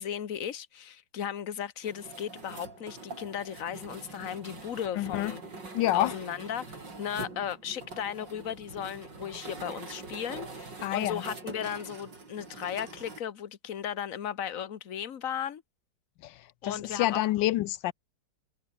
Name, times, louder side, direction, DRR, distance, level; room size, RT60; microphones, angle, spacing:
voice 1, 0.0-5.4 5.9-15.6 16.6-17.2, left 9 dB, 50° left, 1.6 m, -36 dB
sound 1, 1.8-13.2, right 3 dB, 75° right, 5.5 m, -44 dB
voice 2, 5.0-5.3 5.7-6.1 10.8-11.2 16.2-16.4 16.6-17.9, left 15 dB, 85° left, 1.3 m, -27 dB
omnidirectional pair, 1.9 m